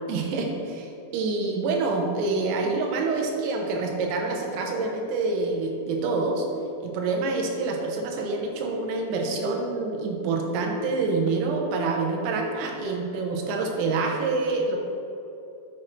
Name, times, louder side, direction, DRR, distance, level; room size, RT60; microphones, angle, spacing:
voice 1, 0.1-6.5 6.8-14.8, right 3 dB, 85° right, 1 dB, 3.7 m, -27 dB
10.0 x 7.7 x 3.3 m, 2.8 s
omnidirectional pair, 5.8 m